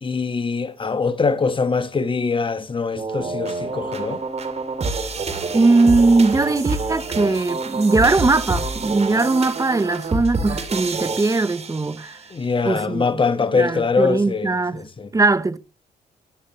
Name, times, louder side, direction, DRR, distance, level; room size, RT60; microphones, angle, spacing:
voice 1, 0.0-4.2 12.3-15.1, left 4 dB, 30° left, 1.3 m, -23 dB
sound 1, 3.0-12.2, right 3 dB, 40° right, 2.6 m, -27 dB
voice 2, 5.5-12.2 12.6-13.2 13.5-14.8 15.1-15.6, right 3 dB, 20° right, 0.8 m, -19 dB
13.0 x 11.5 x 3.1 m
cardioid pair, 70°, 16 cm